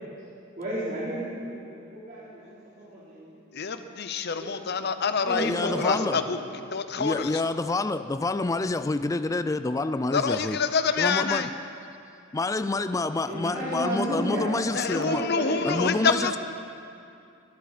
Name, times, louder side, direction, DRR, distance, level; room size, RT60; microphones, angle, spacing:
voice 1, 0.6-3.3 4.3-4.5 5.3-6.2 13.3-14.4 15.0-15.8, right 1 dB, 40° right, -9 dB, 3.7 m, -32 dB
voice 2, 3.5-6.4 6.7-7.4 10.1-11.5 14.7-16.4, left 5 dB, 55° left, 10 dB, 0.8 m, -27 dB
voice 3, 5.3-6.2 7.0-10.6 11.0-11.5 12.3-15.3 15.7-16.4, left 3 dB, 15° left, 11 dB, 0.4 m, -28 dB
23.0 x 13.5 x 4.2 m, 2.6 s
head